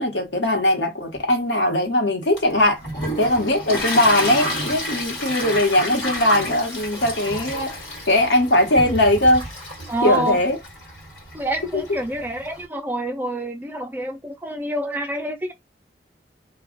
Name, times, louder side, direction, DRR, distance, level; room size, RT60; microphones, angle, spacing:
voice 1, 0.0-2.8 3.2-9.5 10.0-10.6 11.7-11.8, left 1 dB, 80° left, 1.1 m, -20 dB
Toilet flush, 2.4-12.6, equal, 60° left, 1.5 m, -30 dB
voice 2, 9.9-10.4 11.3-15.5, right 1 dB, 10° right, 0.4 m, -27 dB
2.3 x 2.2 x 3.7 m
head